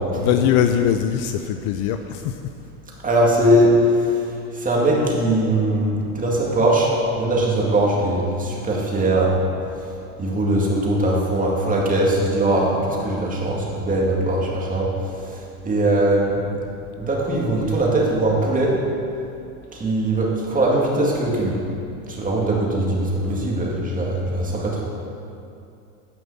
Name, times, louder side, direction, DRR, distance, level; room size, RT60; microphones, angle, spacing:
voice 1, 0.1-2.3, left 9 dB, 50° left, 7 dB, 0.5 m, -21 dB
voice 2, 3.0-3.7 4.6-6.9 7.2-9.4 10.2-14.9 15.3-16.4 17.0-18.7 19.7-21.6 22.1-24.8, right 1 dB, 20° right, -3 dB, 2.2 m, -20 dB
9.9 x 5.4 x 7.0 m, 2.6 s
supercardioid pair, 115°, 43 cm